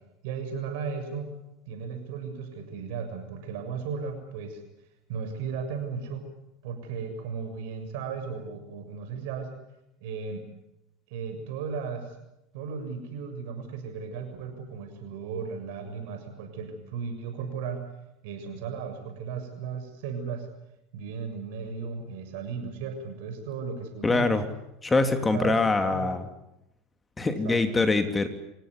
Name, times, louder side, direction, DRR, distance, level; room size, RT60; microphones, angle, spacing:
voice 1, 0.2-1.3 1.7-4.6 5.1-6.3 6.6-9.5 10.0-10.5 11.1-12.1 12.5-17.8 18.2-20.5 20.9-24.4 25.3-26.1 27.2-27.6, right 6 dB, 65° right, 6 dB, 7.0 m, -35 dB
voice 2, 24.0-24.4 24.8-26.3 27.2-28.3, left 3 dB, 20° left, 7 dB, 3.0 m, -24 dB
28.5 x 16.5 x 9.8 m, 0.86 s
hypercardioid pair, 75°, 0 cm